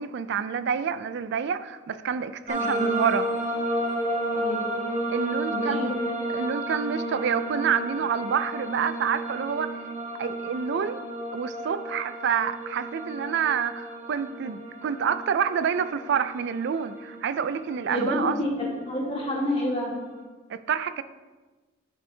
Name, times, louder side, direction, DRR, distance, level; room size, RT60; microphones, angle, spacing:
voice 1, 0.0-3.3 5.1-5.9 6.3-9.7 10.2-11.0 11.3-18.4 20.5-21.0, right 7 dB, 55° right, 12 dB, 0.3 m, -28 dB
sound 1, 2.5-20.2, right 1 dB, 35° right, 1.0 m, -32 dB
voice 2, 4.3-4.7 5.5-5.9 17.9-19.9, left 1 dB, 25° left, -3 dB, 1.5 m, -29 dB
10.5 x 5.4 x 2.8 m, 1.3 s
head